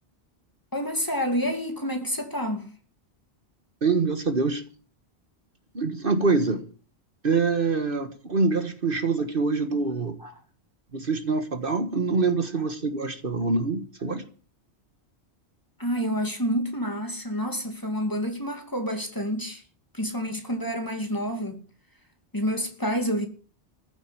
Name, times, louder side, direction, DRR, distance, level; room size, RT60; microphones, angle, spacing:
voice 1, 0.7-2.7 10.2-10.3 15.8-19.6 19.9-21.6 22.3-23.3, equal, 20° left, 2.6 m, -28 dB
voice 2, 3.8-4.6 5.7-6.7 7.2-10.2 10.9-14.2, right 4 dB, 55° right, 1.7 m, -25 dB
14.5 x 8.0 x 9.9 m
omnidirectional pair, 1.1 m